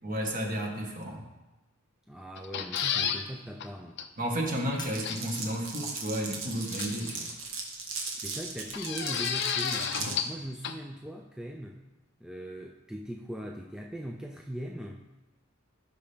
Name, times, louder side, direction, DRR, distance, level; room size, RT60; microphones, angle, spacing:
voice 1, 0.0-1.2 4.2-7.3, equal, 40° right, 0 dB, 1.7 m, -32 dB
voice 2, 2.1-4.0 8.2-11.8 12.2-15.1, right 1 dB, 5° right, 1 dB, 0.4 m, -40 dB
sound 1, 2.4-3.2 3.6-3.7 4.0-4.1 5.0-5.4 6.7-7.3 8.7-10.4 10.6-10.7, left 8 dB, 55° left, 0.6 m, -32 dB
Shatter, 2.8-3.5 4.8-5.6 6.8-7.6, left 3 dB, 20° left, 1.0 m, -47 dB
Glass, 4.9-10.2, right 4 dB, 65° right, 1.4 m, -37 dB
16.0 x 5.7 x 3.6 m, 1.1 s
head